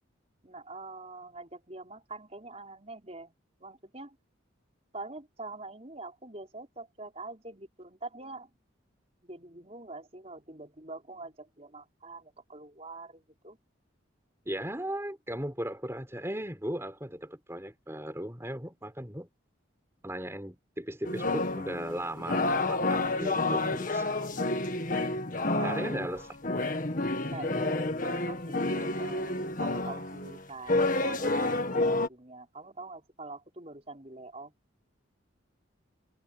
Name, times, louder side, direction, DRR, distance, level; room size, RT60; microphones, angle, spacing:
voice 1, 0.4-4.2 4.9-8.5 9.2-13.6 25.5-26.0 27.2-31.8 32.1-34.5, right 2 dB, 30° right, 5.6 m, -44 dB
voice 2, 14.4-19.3 20.0-24.3 25.6-26.3, right 1 dB, 15° right, 4.8 m, -37 dB
sound 1, 21.0-32.1, left 2 dB, 40° left, 1.8 m, -29 dB
head